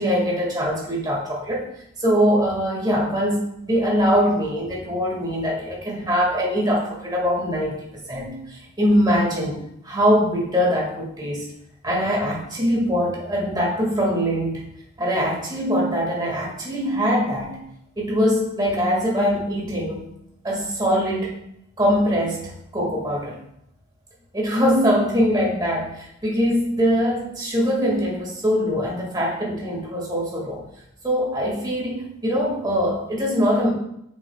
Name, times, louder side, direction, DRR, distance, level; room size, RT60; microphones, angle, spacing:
voice 1, 0.0-1.6 2.0-11.4 11.8-14.6 15.0-17.6 18.0-20.0 20.4-21.3 21.8-23.4 24.3-30.6 31.0-33.7, equal, 20° right, -3 dB, 1.9 m, -22 dB
7.2 x 6.4 x 2.3 m, 0.77 s
head